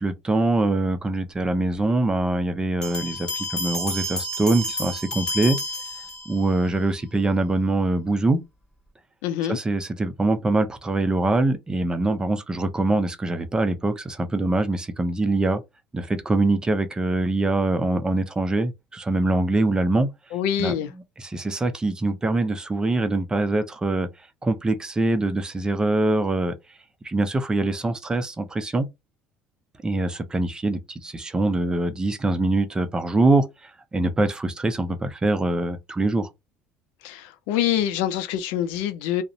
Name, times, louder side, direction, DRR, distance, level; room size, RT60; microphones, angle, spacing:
voice 1, 0.0-5.6 6.3-8.4 9.5-15.6 15.9-20.1 20.6-20.7 21.2-24.1 24.4-26.6 27.0-28.9 29.8-36.3, right 2 dB, 20° right, 0.5 m, -23 dB
sound 1, 2.8-6.6, left 1 dB, 20° left, 1.2 m, -30 dB
voice 2, 9.2-9.6 20.3-20.9 37.0-39.2, left 10 dB, 80° left, 0.4 m, -25 dB
2.5 x 2.0 x 2.6 m
supercardioid pair, 95°, 4 cm